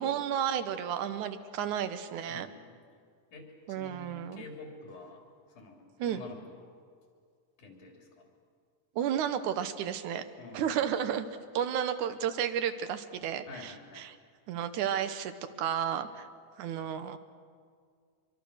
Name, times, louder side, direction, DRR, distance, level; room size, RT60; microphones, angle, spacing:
voice 1, 0.0-2.5 3.7-4.4 6.0-6.2 9.0-10.3 10.5-11.3 11.5-14.2 14.5-15.3 15.6-16.3 16.6-17.2, right 9 dB, 80° right, 10 dB, 2.4 m, -32 dB
voice 2, 2.3-2.7 3.3-5.2 5.5-6.7 7.6-8.3 10.4-10.9 13.5-14.1, left 2 dB, 85° left, 1 dB, 4.8 m, -48 dB
25.0 x 23.5 x 6.5 m, 2.1 s
omnidirectional pair, 3.5 m